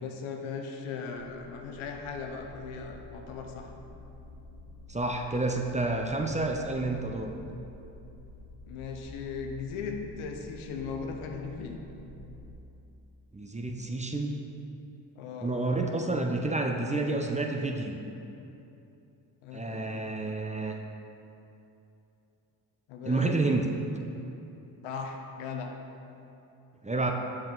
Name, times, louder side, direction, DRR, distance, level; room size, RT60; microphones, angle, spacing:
voice 1, 0.0-3.7 8.7-11.8 15.2-15.6 19.4-19.9 22.9-23.6 24.8-25.7 27.0-27.1, left 5 dB, 75° left, 3 dB, 0.8 m, -38 dB
sound 1, 1.1-12.5, left 2 dB, 35° right, 1.4 m, -48 dB
voice 2, 4.9-7.3 13.3-14.4 15.4-18.0 19.5-20.8 23.1-23.7 26.8-27.1, right 2 dB, 15° right, 2 dB, 0.6 m, -29 dB
7.2 x 5.4 x 3.9 m, 2.8 s
hypercardioid pair, 45°, 49 cm